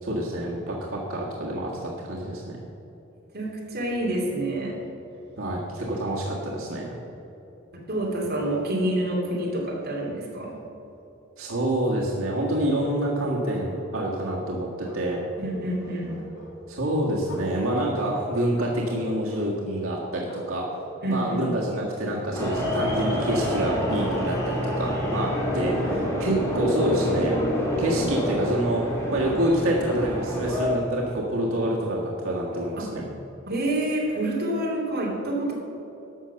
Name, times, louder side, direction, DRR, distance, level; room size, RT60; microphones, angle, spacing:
voice 1, 0.0-2.6 5.4-6.9 11.4-15.2 16.7-20.6 21.1-27.4 27.8-28.8 29.1-33.1, right 1 dB, 85° right, -4 dB, 1.7 m, -27 dB
voice 2, 3.3-4.8 7.9-10.6 15.4-16.2 21.0-21.5 25.5-25.6 32.8-32.9 33.5-35.5, right 1 dB, 50° right, -3 dB, 2.8 m, -27 dB
Bark, 12.8-14.4 14.8-16.6 17.2-18.2 18.5-19.5 20.3-21.9, equal, 65° left, 1.9 m, -41 dB
sound 1, 22.3-30.7, equal, 15° left, 2.7 m, -27 dB
12.0 x 6.7 x 7.0 m, 3.0 s
head